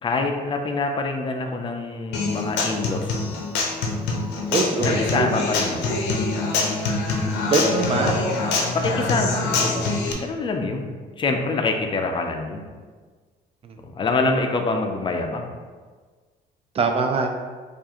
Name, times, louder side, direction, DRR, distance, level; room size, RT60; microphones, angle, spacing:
voice 1, 0.0-3.4 4.8-6.1 8.7-12.7 13.8-15.5, left 3 dB, 30° left, 4 dB, 0.5 m, -26 dB
Human voice / Acoustic guitar, 2.1-10.1, left 3 dB, 85° left, 0.6 m, -25 dB
voice 2, 4.5-5.4 7.5-8.2 16.8-17.3, right 4 dB, 35° right, 4 dB, 0.4 m, -22 dB
4.5 x 2.5 x 2.9 m, 1.5 s
cardioid pair, 110°, 17 cm